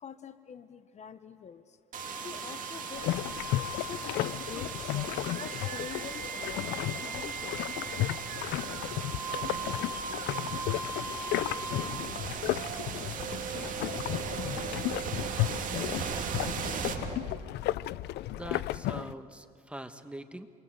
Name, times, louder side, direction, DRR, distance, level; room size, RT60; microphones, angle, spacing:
voice 1, 0.0-1.8 2.2-3.1 3.8-6.7 7.0-7.6, left 7 dB, 40° left, 13 dB, 1.0 m, -46 dB
sound 1, 1.9-17.8, right 5 dB, 50° right, 2.4 m, -37 dB
sound 2, 3.0-19.1, left 15 dB, 75° left, 0.5 m, -34 dB
voice 2, 18.4-20.5, right 1 dB, 5° right, 9 dB, 1.4 m, -43 dB
28.5 x 22.0 x 8.0 m, 2.2 s
cardioid pair, 110°, 17 cm